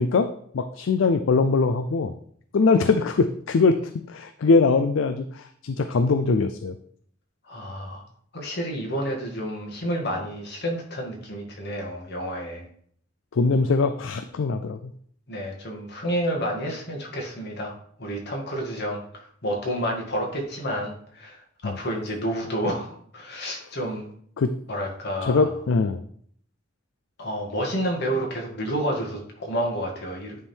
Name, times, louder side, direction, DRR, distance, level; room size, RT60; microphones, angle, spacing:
voice 1, 0.0-2.1 2.5-3.8 4.1-6.7 13.3-14.9 21.6-21.8 24.4-24.5 25.2-26.0, left 4 dB, 70° left, 9 dB, 0.4 m, -22 dB
voice 2, 7.4-8.0 8.3-12.6 15.3-24.1 24.7-25.5 27.2-30.4, equal, 55° left, -1 dB, 1.9 m, -30 dB
9.8 x 3.6 x 4.4 m, 0.62 s
head